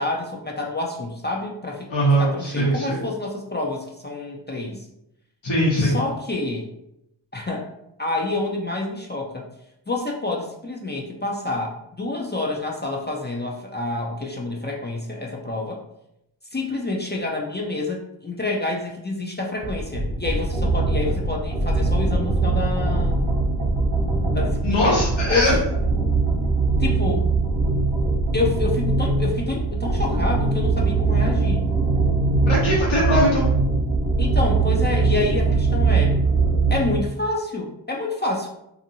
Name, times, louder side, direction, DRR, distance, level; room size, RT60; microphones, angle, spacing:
voice 1, 0.0-4.9 5.8-6.7 7.3-7.7 8.0-9.5 9.9-15.8 16.5-23.2 24.3-25.0 25.3-25.5 26.8-27.3 28.3-31.7 34.2-36.2 36.7-38.5, left 2 dB, 25° left, -1 dB, 0.4 m, -28 dB
voice 2, 1.9-3.0 5.4-6.0 24.6-25.5 32.5-33.5, equal, 75° left, -8 dB, 1.0 m, -20 dB
sound 1, 19.6-37.1, right 3 dB, 55° right, 1.1 m, -21 dB
2.7 x 2.5 x 2.7 m, 0.82 s
wide cardioid pair, 45°, 47 cm